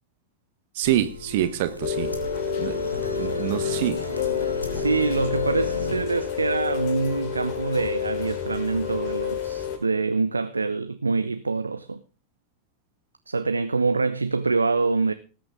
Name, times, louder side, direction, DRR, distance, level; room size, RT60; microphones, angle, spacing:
voice 1, 0.7-2.1 2.6-2.9 3.2-4.0, right 12 dB, 50° right, 1.1 m, -26 dB
sound 1, 0.8-6.0, left 2 dB, 90° left, 2.6 m, -33 dB
Rain, 1.8-9.8, left 8 dB, 45° left, 4.3 m, -29 dB
voice 2, 4.7-12.0 13.3-15.1, right 4 dB, 80° right, 0.8 m, -25 dB
19.5 x 8.9 x 3.5 m
figure-of-eight pair, 90°, 0 cm